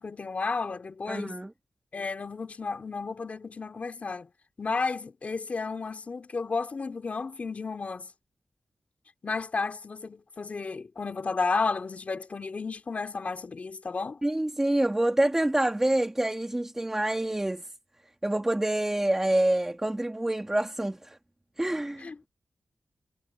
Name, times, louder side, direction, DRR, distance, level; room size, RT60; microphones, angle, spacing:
voice 1, 0.0-1.4 1.9-4.3 4.6-8.1 9.2-14.2 22.0-22.3, left 4 dB, 45° left, 3.3 m, -32 dB
voice 2, 1.1-1.5 14.2-17.6 18.2-21.2 21.6-22.3, right 1 dB, 15° right, 1.9 m, -27 dB
wide cardioid pair, 115°, 3 cm